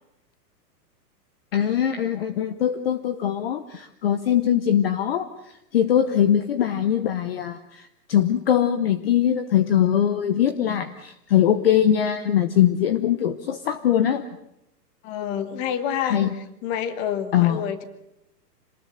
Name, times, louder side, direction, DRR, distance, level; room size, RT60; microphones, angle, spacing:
voice 1, 1.5-14.2 16.0-16.3 17.3-17.6, left 10 dB, 35° left, 11 dB, 1.0 m, -22 dB
voice 2, 15.0-16.2 16.6-17.8, left 9 dB, 20° left, 11 dB, 1.4 m, -28 dB
26.5 x 20.0 x 7.8 m, 0.85 s
hypercardioid pair, 170°, 49 cm